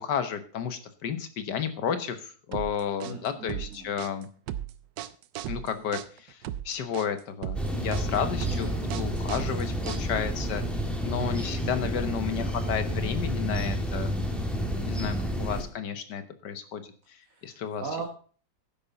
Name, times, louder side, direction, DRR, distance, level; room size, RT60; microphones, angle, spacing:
voice 1, 0.0-4.3 5.5-6.4 6.6-10.6 11.0-14.1 14.7-17.8, left 8 dB, 70° left, 10 dB, 1.7 m, -32 dB
sound 1, 2.5-10.4, right 11 dB, 80° right, 1.3 m, -37 dB
voice 2, 3.0-3.9 8.5-8.8 15.0-15.6 17.2-18.0, right 4 dB, 45° right, 0 dB, 2.5 m, -40 dB
sound 2, 7.5-15.6, equal, ahead, 1.9 m, -30 dB
11.5 x 10.0 x 4.0 m, 0.41 s
omnidirectional pair, 1.9 m